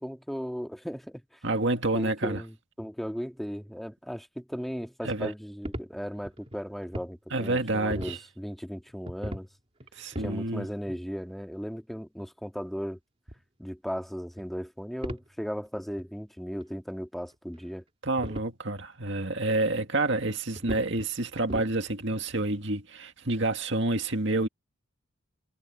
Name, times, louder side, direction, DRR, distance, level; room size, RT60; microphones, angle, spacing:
voice 1, 0.0-1.4 1.9-9.5 10.2-13.0 13.6-17.8, equal, ahead, 2.3 m, -36 dB
voice 2, 1.4-2.4 5.0-5.3 7.3-8.2 10.0-10.7 18.0-24.5, right 2 dB, 55° right, 2.1 m, -28 dB
sound 1, 5.6-7.1 7.5-8.2 8.9-9.5 9.8-10.4 10.9-11.0 12.2-12.3 13.3-13.4 14.4-14.6 15.0-15.3 15.7-15.8 15.9-16.1 16.6-16.7 17.3-17.7 18.2-18.5 19.2-19.3 19.8-19.9 20.6-21.1 21.4-21.8 22.1-22.2, equal, 25° right, 3.2 m, -38 dB
head